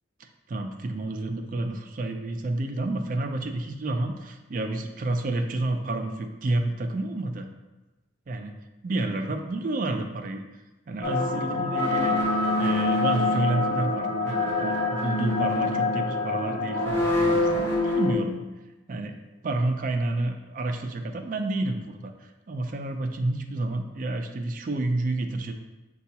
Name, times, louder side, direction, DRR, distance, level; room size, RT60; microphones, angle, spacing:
voice 1, 0.5-7.5 8.3-8.5 8.8-10.4 10.9-12.2 12.6-18.4 18.9-19.1 19.4-22.1 22.5-25.5, right 2 dB, 45° right, 5 dB, 0.3 m, -29 dB
sound 1, 11.0-18.1, left 2 dB, 10° left, 0.7 m, -25 dB
6.7 x 2.3 x 2.8 m, 1.1 s
head